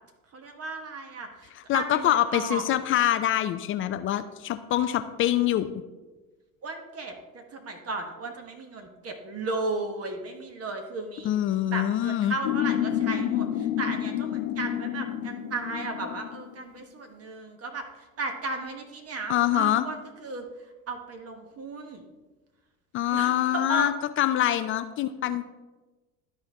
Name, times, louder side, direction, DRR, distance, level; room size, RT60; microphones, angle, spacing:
voice 1, 0.3-2.6 6.6-11.3 11.7-17.9 18.2-20.5 20.9-22.0 23.1-23.9, right 3 dB, 35° right, 5 dB, 1.2 m, -35 dB
voice 2, 1.5-5.8 11.2-12.3 19.3-19.9 22.9-25.5, left 12 dB, 30° left, 11 dB, 0.4 m, -25 dB
sound 1, 12.4-16.5, left 11 dB, 70° left, 0.7 m, -29 dB
12.0 x 4.3 x 3.5 m, 1.2 s
hypercardioid pair, 70°, 43 cm